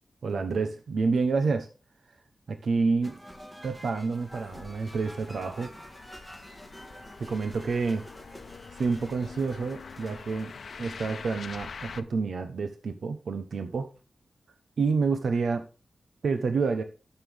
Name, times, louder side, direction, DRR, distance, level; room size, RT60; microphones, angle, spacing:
voice 1, 0.2-1.7 2.5-3.2 3.6-5.7 7.2-8.0 8.8-10.5 10.8-13.9 14.8-15.7 16.2-16.8, right 4 dB, 85° right, 8 dB, 0.9 m, -28 dB
sound 1, 3.0-11.6, equal, 10° right, 1.6 m, -48 dB
sound 2, 4.3-12.0, left 5 dB, 80° left, 0.7 m, -45 dB
13.0 x 6.8 x 3.5 m, 0.34 s
wide cardioid pair, 145°, 0 cm